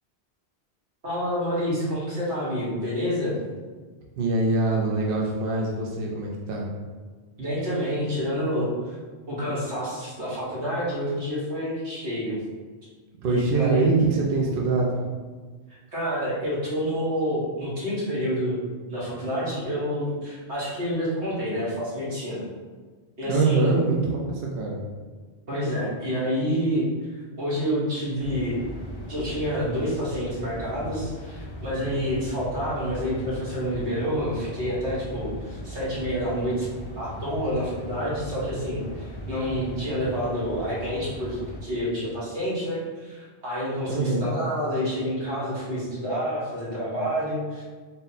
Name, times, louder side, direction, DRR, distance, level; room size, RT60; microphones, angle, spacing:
voice 1, 1.0-3.4 7.4-9.0 9.3-12.4 13.3-13.9 15.7-18.6 18.9-22.4 23.2-23.7 25.5-26.8 27.4-28.6 29.1-36.7 36.9-47.6, equal, 80° right, -8 dB, 1.7 m, -28 dB
voice 2, 4.2-6.7 13.2-15.0 23.2-24.8 43.9-44.3, right 3 dB, 60° right, -2 dB, 0.7 m, -24 dB
sound 1, 28.2-41.6, left 1 dB, 45° left, 0.4 m, -38 dB
3.8 x 2.1 x 4.1 m, 1.4 s
omnidirectional pair, 1.1 m